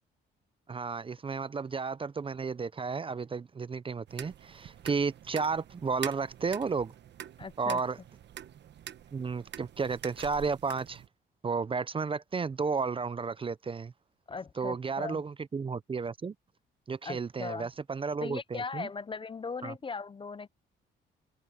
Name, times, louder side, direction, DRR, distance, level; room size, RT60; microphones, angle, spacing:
voice 1, 0.7-6.9 7.6-8.0 9.1-11.0 11.4-13.9 14.6-16.3 16.9-18.9 19.6-19.7, right 5 dB, 25° right, 0.5 m, -33 dB
sound 1, 4.1-11.1, right 10 dB, 60° right, 1.1 m, -46 dB
voice 2, 7.4-7.8 14.3-15.2 17.0-17.7 18.2-20.5, left 4 dB, 25° left, 0.5 m, -38 dB
cardioid pair, 90°, 20 cm